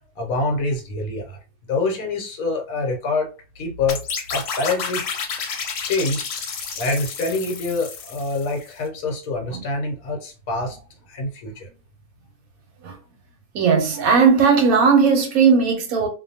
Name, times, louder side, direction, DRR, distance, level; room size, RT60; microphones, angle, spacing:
voice 1, 0.2-1.4 1.7-3.3 3.6-4.0 4.3-5.1 5.8-6.5 6.8-10.8 11.1-11.7, left 3 dB, 70° left, 1.1 m, -25 dB
sound 1, 3.9-8.7, left 6 dB, 90° left, 1.1 m, -30 dB
voice 2, 13.5-16.1, right 5 dB, 70° right, 1.0 m, -17 dB
2.5 x 2.2 x 2.6 m
omnidirectional pair, 1.6 m